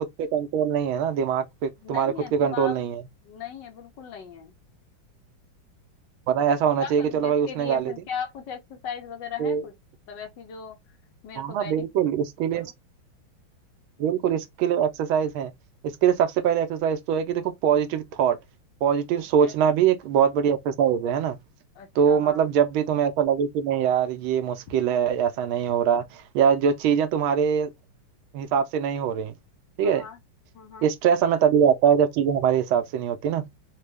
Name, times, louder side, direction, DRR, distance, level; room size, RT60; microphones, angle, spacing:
voice 1, 0.0-3.0 6.3-7.9 9.4-9.6 11.4-12.7 14.0-15.5 15.8-18.4 18.8-21.4 22.0-27.7 28.3-29.3 29.8-30.0 30.8-33.4, right 8 dB, 85° right, 1.5 m, -23 dB
voice 2, 1.8-2.8 3.2-4.5 6.8-9.7 10.1-10.8 11.2-11.9 12.5-12.6 19.1-19.6 21.7-22.4 29.8-30.2 30.5-30.9, left 7 dB, 65° left, 1.4 m, -38 dB
4.1 x 2.2 x 3.3 m
omnidirectional pair, 2.2 m